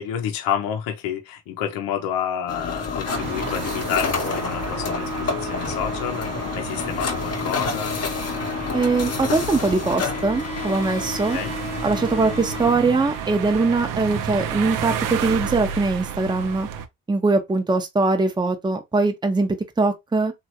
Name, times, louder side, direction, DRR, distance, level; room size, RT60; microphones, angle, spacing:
voice 1, 0.0-6.3 6.6-8.0 11.3-11.5, left 9 dB, 80° left, 0.7 m, -29 dB
sound 1, 2.5-12.7, left 4 dB, 45° left, 0.9 m, -29 dB
sound 2, 3.1-16.9, right 8 dB, 70° right, 0.6 m, -32 dB
voice 2, 8.7-11.4 11.8-16.7 17.1-20.3, right 3 dB, 15° right, 0.7 m, -22 dB
Bowed string instrument, 9.9-15.1, equal, 20° left, 1.0 m, -41 dB
3.0 x 2.4 x 2.8 m
supercardioid pair, 65°, 34 cm